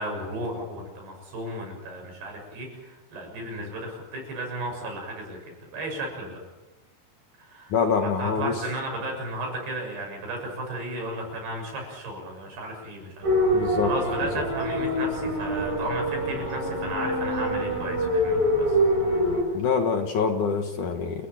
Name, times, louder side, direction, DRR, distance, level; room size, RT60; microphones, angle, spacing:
voice 1, 0.0-5.4 5.7-6.4 7.4-7.7 8.2-18.8, right 1 dB, 75° right, 2 dB, 9.0 m, -34 dB
voice 2, 7.7-8.5 13.5-13.9 14.4-14.5 19.5-21.3, left 5 dB, 60° left, 5 dB, 2.6 m, -25 dB
sound 1, 13.2-19.4, equal, 55° right, 8.0 m, -25 dB
29.0 x 15.5 x 9.0 m, 1.1 s
omnidirectional pair, 4.8 m